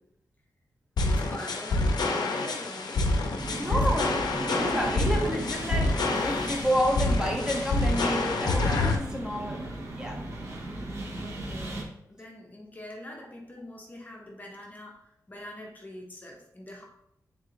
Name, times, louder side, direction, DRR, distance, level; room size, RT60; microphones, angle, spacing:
sound 1, 1.0-9.0, left 2 dB, 90° left, 0.5 m, -27 dB
voice 1, 1.0-3.1 3.5-4.1 4.4-4.5 11.1-16.9, left 1 dB, 25° left, 0 dB, 0.6 m, -43 dB
sound 2, 3.4-11.8, right 1 dB, 45° right, 0.9 m, -37 dB
voice 2, 3.6-4.1 4.5-9.6 10.0-10.2, equal, 10° right, 0 dB, 0.7 m, -30 dB
3.7 x 3.0 x 3.8 m, 0.78 s
wide cardioid pair, 140°, 7 cm